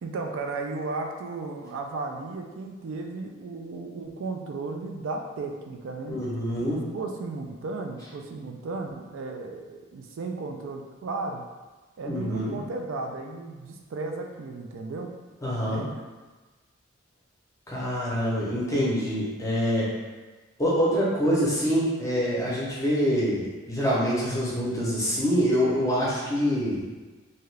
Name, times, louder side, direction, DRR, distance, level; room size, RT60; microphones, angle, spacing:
voice 1, 0.0-6.2 6.7-11.4 12.0-15.1 15.6-15.9, right 3 dB, 65° right, 2 dB, 0.3 m, -34 dB
voice 2, 6.1-6.8 12.0-12.5 15.4-15.8 17.7-19.9 20.6-26.8, equal, 15° left, -6 dB, 0.6 m, -25 dB
2.7 x 2.4 x 3.1 m, 1.3 s
head